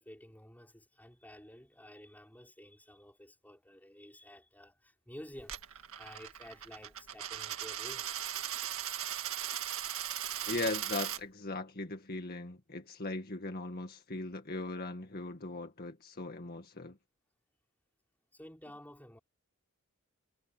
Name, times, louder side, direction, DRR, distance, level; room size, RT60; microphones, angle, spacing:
voice 1, 0.0-8.1 18.3-19.2, equal, 10° left, 5.7 m, -52 dB
Coin (dropping), 5.4-11.2, right 11 dB, 70° right, 1.8 m, -38 dB
voice 2, 10.5-17.0, left 2 dB, 45° left, 1.9 m, -39 dB
head